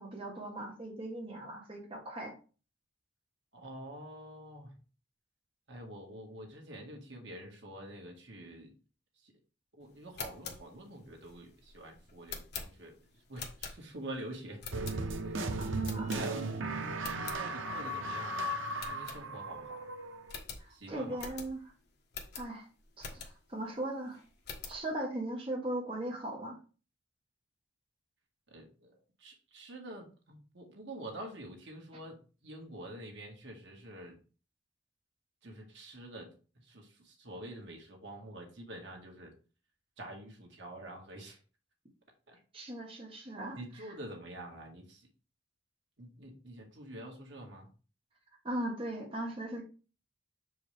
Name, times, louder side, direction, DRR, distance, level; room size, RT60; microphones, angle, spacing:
voice 1, 0.0-2.3 15.6-16.1 20.6-21.7 22.3-22.7 23.0-24.2 24.7-26.6 42.5-43.6 48.4-49.6, right 1 dB, 30° right, -2 dB, 1.4 m, -38 dB
voice 2, 3.5-4.7 5.7-8.7 9.2-9.3 9.7-13.0 13.3-14.6 15.3-15.4 16.1-19.9 20.7-21.3 28.5-34.2 35.4-39.3 40.0-41.4 42.3-42.4 43.5-45.1 46.0-47.7, right 1 dB, 65° right, 1 dB, 1.8 m, -47 dB
sound 1, 10.0-14.1 14.6-15.3 15.8-16.6 16.9-17.4 17.9-18.0 18.2-18.3 18.8-19.7 19.9-20.0 20.3-23.6 24.0-24.8, left 5 dB, 55° left, 1.3 m, -45 dB
sound 2, 14.7-20.4, right 2 dB, 85° right, 0.8 m, -36 dB
7.1 x 4.8 x 3.4 m, 0.36 s
head